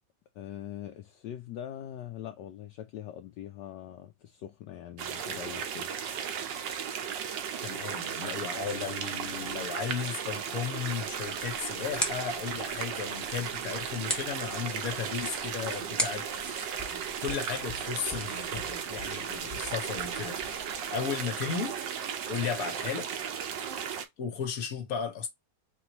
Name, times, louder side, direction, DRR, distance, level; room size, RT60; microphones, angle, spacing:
voice 1, 0.3-5.9, left 11 dB, 75° left, 1.1 m, -42 dB
sound 1, 5.0-24.1, right 8 dB, 75° right, 1.4 m, -35 dB
voice 2, 7.6-21.8 22.3-23.1 24.2-25.3, left 7 dB, 55° left, 1.3 m, -35 dB
sound 2, 10.8-20.9, equal, ahead, 0.9 m, -40 dB
4.4 x 3.1 x 2.9 m
omnidirectional pair, 2.0 m